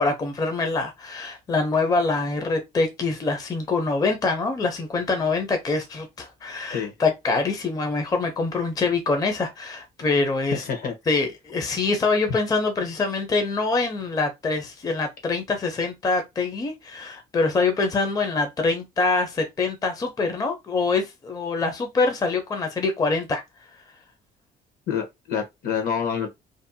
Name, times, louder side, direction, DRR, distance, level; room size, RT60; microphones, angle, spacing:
voice 1, 0.0-10.6 11.1-23.4, left 3 dB, 20° left, 0.5 m, -25 dB
voice 2, 10.6-10.9 24.9-26.3, left 7 dB, 60° left, 0.9 m, -27 dB
2.6 x 2.0 x 2.6 m
cardioid pair, 110°, 17 cm